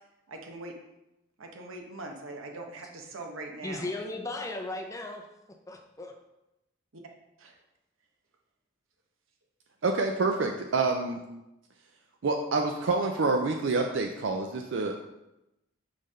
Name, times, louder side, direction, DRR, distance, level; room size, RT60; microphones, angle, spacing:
voice 1, 0.3-0.7 1.4-3.9 6.9-7.0 7.4-7.5, right 2 dB, 90° right, 2 dB, 1.0 m, -41 dB
voice 2, 3.6-5.2 5.7-6.1, left 2 dB, 15° left, 3 dB, 0.5 m, -36 dB
voice 3, 9.8-11.2 12.2-14.9, right 3 dB, 65° right, 3 dB, 0.4 m, -27 dB
5.6 x 3.3 x 5.2 m, 0.92 s
head